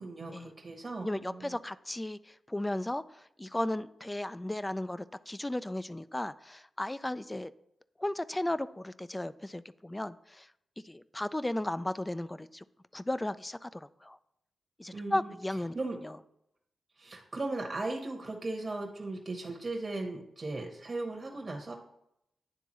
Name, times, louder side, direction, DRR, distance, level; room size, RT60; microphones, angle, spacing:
voice 1, 0.0-1.6 14.9-15.3 15.7-16.0 17.0-21.7, right 2 dB, 40° right, 1 dB, 1.0 m, -37 dB
voice 2, 1.0-7.5 8.0-10.5 10.8-12.6 12.9-14.2 14.8-15.8 16.0-16.2, left 1 dB, 15° left, 16 dB, 0.3 m, -35 dB
9.9 x 3.5 x 3.0 m, 0.80 s
cardioid pair, 50°, 0 cm